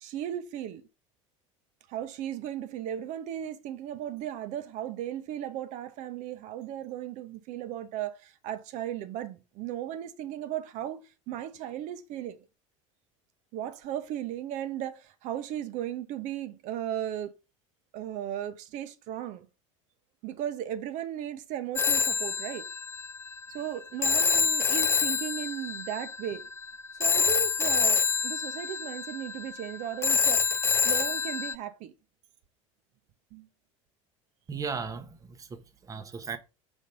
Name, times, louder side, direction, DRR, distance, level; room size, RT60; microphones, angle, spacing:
voice 1, 0.0-0.8 1.9-12.4 13.5-17.3 17.9-19.5 20.2-22.7 23.5-26.5 27.0-31.9 33.3-33.5, right 11 dB, 50° right, 0.8 m, -36 dB
Telephone, 21.8-31.5, left 5 dB, 15° left, 0.4 m, -27 dB
voice 2, 34.5-36.4, right 5 dB, 20° right, 0.9 m, -37 dB
5.4 x 3.6 x 5.2 m
figure-of-eight pair, 70°, 16 cm